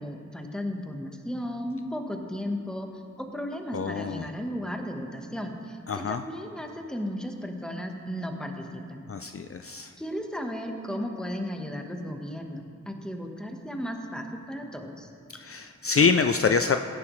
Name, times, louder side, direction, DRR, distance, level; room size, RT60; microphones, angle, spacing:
voice 1, 0.0-2.9 3.2-9.1 10.0-15.1, equal, 5° left, 3 dB, 1.2 m, -35 dB
voice 2, 3.7-4.3 5.9-6.2 9.1-9.9 15.4-16.8, left 5 dB, 50° left, 7 dB, 0.4 m, -25 dB
16.0 x 10.0 x 3.2 m, 2.4 s
wide cardioid pair, 65°, 29 cm